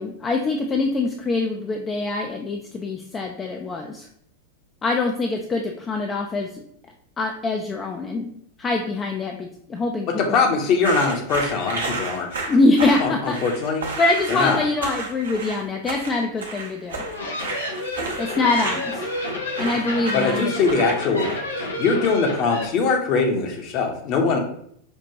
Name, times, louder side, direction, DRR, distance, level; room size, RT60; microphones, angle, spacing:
voice 1, 0.0-4.1 4.8-6.6 7.2-8.3 8.6-10.4 12.5-13.4 14.0-17.0 18.2-19.1 19.6-20.8, left 2 dB, 20° left, 2 dB, 0.4 m, -24 dB
voice 2, 10.1-12.3 13.0-13.9 14.3-14.7 20.1-21.3 21.8-24.4, left 4 dB, 40° left, 3 dB, 0.8 m, -22 dB
sound 1, 10.8-21.6, right 3 dB, 65° right, 0.7 m, -32 dB
sound 2, 16.9-22.6, left 2 dB, 75° left, 0.7 m, -29 dB
5.3 x 2.5 x 2.9 m, 0.68 s
figure-of-eight pair, 90°, 0 cm